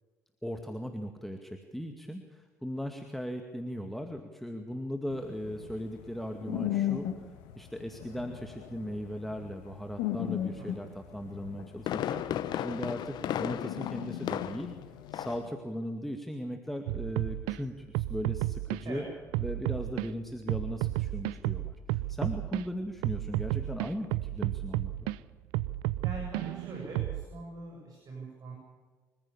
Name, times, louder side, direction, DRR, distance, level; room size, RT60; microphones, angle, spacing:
voice 1, 0.4-7.1 7.6-14.7 15.1-19.1 19.4-25.1, equal, ahead, 4 dB, 2.2 m, -38 dB
sound 1, 5.1-15.5, left 12 dB, 75° left, 1.8 m, -38 dB
Fireworks, 11.4-14.8 15.1-15.5 15.8-15.9, left 11 dB, 60° left, 1.0 m, -35 dB
sound 2, 16.9-17.6 17.9-18.8 19.3-20.1 20.5-22.6 23.0-25.2 25.5-27.2, right 17 dB, 75° right, 0.6 m, -32 dB
voice 2, 26.0-28.5, right 2 dB, 50° right, -2 dB, 7.8 m, -42 dB
25.5 x 15.0 x 7.2 m, 1.4 s
hypercardioid pair, 55°, 8 cm